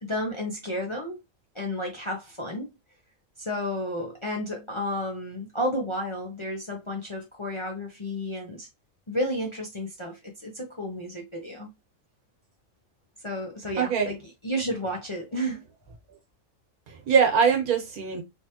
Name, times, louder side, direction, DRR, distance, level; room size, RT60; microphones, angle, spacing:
voice 1, 0.0-1.2 1.5-2.7 3.4-8.7 9.1-11.7 13.2-14.2 14.4-15.6, equal, 30° left, 0.6 m, -32 dB
voice 2, 13.8-14.1 16.9-18.2, right 6 dB, 80° right, 1.6 m, -22 dB
3.3 x 3.2 x 2.8 m
omnidirectional pair, 1.5 m